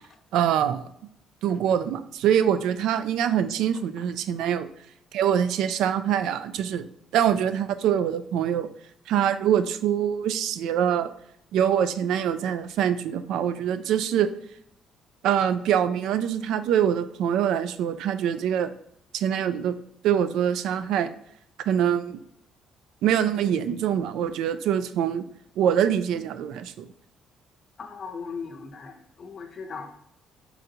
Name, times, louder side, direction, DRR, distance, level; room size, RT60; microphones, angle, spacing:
voice 1, 0.3-0.8 1.4-4.7 5.1-6.9 7.1-8.7 9.1-11.1 11.5-14.3 15.2-18.7 19.1-19.7 20.0-21.1 21.7-22.2 23.0-25.2 25.6-26.9, right 9 dB, 75° right, 12 dB, 0.3 m, -24 dB
voice 2, 27.8-29.9, left 5 dB, 40° left, 6 dB, 0.6 m, -38 dB
4.3 x 3.8 x 2.8 m, 0.72 s
cardioid pair, 140°, 0 cm